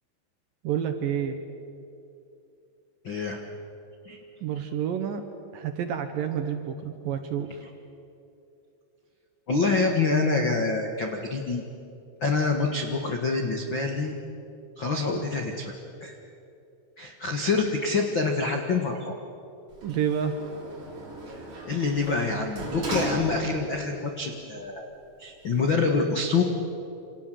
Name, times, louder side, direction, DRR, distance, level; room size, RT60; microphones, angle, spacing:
voice 1, 0.6-1.4 4.4-5.2 5.5-7.6 19.8-20.4, right 8 dB, 70° right, 7 dB, 2.3 m, -29 dB
voice 2, 3.0-3.4 4.0-4.2 9.5-11.6 12.2-14.1 14.8-15.7 16.0-16.2 17.0-19.1 21.3-24.9 25.2-26.4, left 4 dB, 80° left, 3 dB, 1.0 m, -26 dB
Sliding door, 19.7-23.8 24.3-24.4, right 1 dB, 40° right, 6.0 m, -36 dB
28.0 x 27.0 x 7.8 m, 2.7 s
omnidirectional pair, 5.3 m